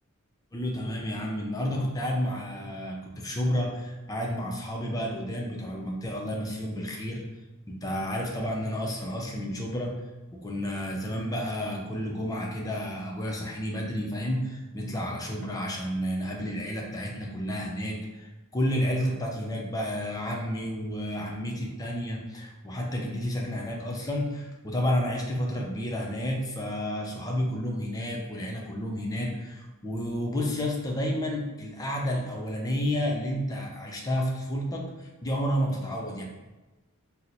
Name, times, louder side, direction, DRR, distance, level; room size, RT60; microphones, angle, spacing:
voice 1, 0.5-7.2 7.7-9.9 10.3-36.2, equal, 15° left, -1 dB, 0.4 m, -31 dB
4.1 x 2.0 x 2.6 m, 1.1 s
head